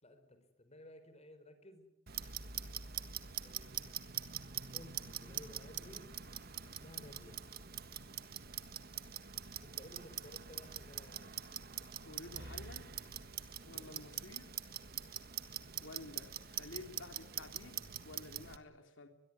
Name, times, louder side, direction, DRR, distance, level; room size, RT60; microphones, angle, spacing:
voice 1, 0.0-1.9 3.4-3.9 4.5-6.1 6.5-7.4 9.6-11.5 13.5-14.3, left 1 dB, 35° left, 4.8 m, -57 dB
Clock, 2.1-18.6, right 10 dB, 55° right, 1.7 m, -44 dB
voice 2, 12.0-12.9 13.6-14.6 15.8-19.1, left 2 dB, 75° left, 3.3 m, -52 dB
22.5 x 22.0 x 9.7 m
head